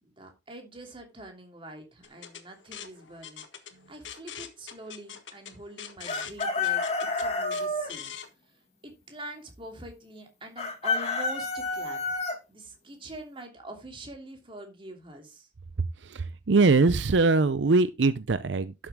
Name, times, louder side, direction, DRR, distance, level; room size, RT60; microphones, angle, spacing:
voice 1, 0.0-8.1 8.8-12.0 12.5-15.5, right 1 dB, 30° right, 3.0 m, -44 dB
sound 1, 2.0-8.3, left 8 dB, 85° left, 1.6 m, -43 dB
Chicken rooster, 6.1-7.9 10.6-12.4, left 3 dB, 35° left, 2.3 m, -29 dB
voice 2, 16.0-18.7, right 3 dB, 75° right, 0.6 m, -22 dB
12.0 x 7.5 x 3.6 m
head